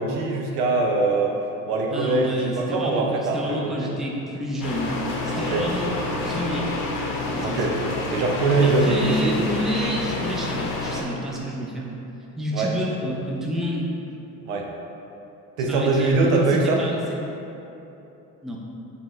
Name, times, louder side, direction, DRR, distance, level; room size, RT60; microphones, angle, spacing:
voice 1, 0.0-1.4 1.7-3.9 5.3-5.7 7.4-7.8 8.1-9.4 12.5-12.7 14.4-14.7 15.6-16.8, right 3 dB, 80° right, 0 dB, 0.6 m, -22 dB
voice 2, 1.9-4.9 5.2-6.8 7.1-7.6 8.6-11.9 12.4-13.9 15.6-16.9 18.4-18.6, equal, ahead, -2 dB, 0.4 m, -29 dB
sound 1, 4.6-11.0, left 2 dB, 45° left, 0.8 m, -28 dB
5.1 x 2.1 x 3.1 m, 2.9 s
hypercardioid pair, 60°, 46 cm